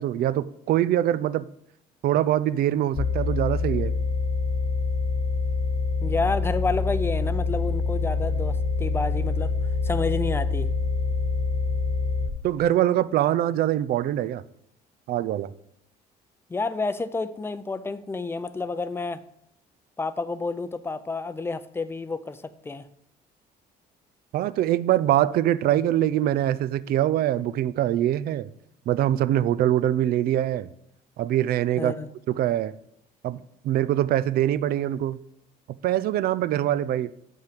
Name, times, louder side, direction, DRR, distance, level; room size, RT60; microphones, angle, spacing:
voice 1, 0.0-1.5 2.0-3.9 12.4-14.4 15.1-15.5 24.3-28.5 28.9-30.7 31.2-31.9 32.3-32.7 33.2-33.4 33.6-35.2 35.8-37.1, right 12 dB, 65° right, 0.4 m, -23 dB
sound 1, 2.9-12.3, left 4 dB, 50° left, 1.1 m, -26 dB
voice 2, 6.0-9.5 9.8-10.7 16.5-19.2 20.0-22.9 31.8-32.1, left 3 dB, 15° left, 0.5 m, -29 dB
7.8 x 5.7 x 5.0 m
cardioid pair, 110°, 17 cm